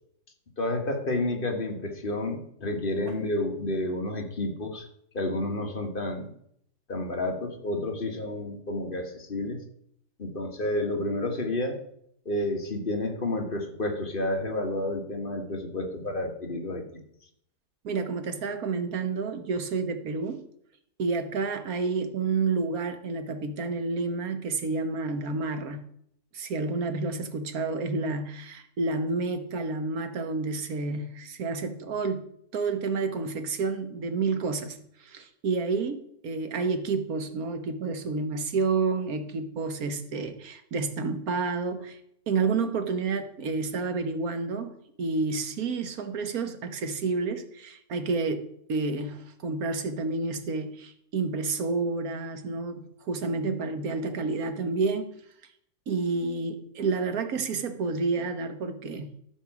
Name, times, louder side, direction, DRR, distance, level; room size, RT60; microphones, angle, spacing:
voice 1, 0.6-4.8 5.1-6.3 6.9-9.6 10.2-11.8 12.2-17.0, left 1 dB, 35° left, 3 dB, 1.5 m, -30 dB
voice 2, 17.8-20.5 21.0-25.8 26.3-42.0 42.3-48.4 48.7-55.1 55.9-59.1, right 4 dB, 60° right, 8 dB, 1.5 m, -30 dB
13.5 x 5.3 x 6.0 m, 0.70 s
omnidirectional pair, 1.8 m